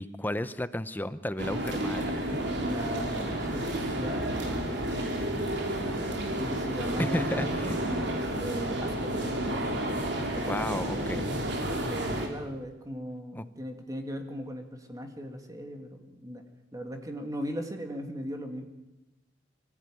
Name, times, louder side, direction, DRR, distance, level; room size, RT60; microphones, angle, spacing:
voice 1, 0.0-2.4 7.0-7.8 10.4-11.4 13.3-13.4, left 1 dB, 10° left, 14 dB, 0.6 m, -33 dB
sound 1, 1.4-12.3, right 1 dB, 65° right, 3.4 m, -31 dB
voice 2, 2.7-5.5 5.8-6.1 6.4-7.6 8.3-9.3 10.1-16.4 16.7-18.6, equal, 20° right, 5 dB, 2.0 m, -39 dB
24.5 x 15.0 x 9.1 m, 1.1 s
head